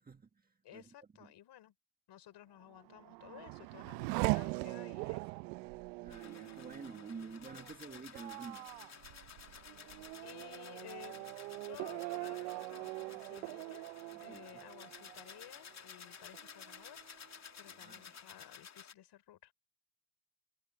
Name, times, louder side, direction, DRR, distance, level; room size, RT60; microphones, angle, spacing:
voice 1, 0.0-0.9 1.2-1.3 6.0-8.7 14.1-14.6 17.6-18.1, right 4 dB, 20° right, 1.5 m, -50 dB
voice 2, 0.6-1.7 2.1-5.4 10.2-11.4 11.6-13.9 14.2-17.0 17.6-19.5, left 12 dB, 55° left, 4.5 m, -55 dB
Race car auto racing / Accelerating revving vroom, 2.7-15.9 16.3-17.0, right 26 dB, 80° right, 0.7 m, -41 dB
sound 1, 6.1-18.9, left 7 dB, 35° left, 2.6 m, -54 dB
supercardioid pair, 85°, 49 cm